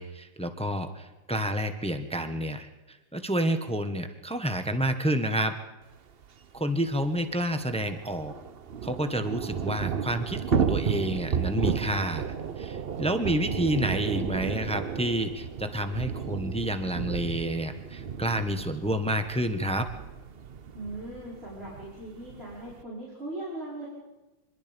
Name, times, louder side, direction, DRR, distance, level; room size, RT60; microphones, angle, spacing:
voice 1, 0.0-5.5 6.5-8.3 8.8-19.9, right 1 dB, 5° left, 8 dB, 1.0 m, -29 dB
Thunder / Rain, 6.2-6.3 6.5-6.6 6.9-22.8, right 7 dB, 60° right, 0.6 m, -33 dB
voice 2, 20.7-23.9, right 1 dB, 30° right, -7 dB, 5.8 m, -39 dB
26.0 x 21.5 x 5.4 m, 1.1 s
omnidirectional pair, 2.2 m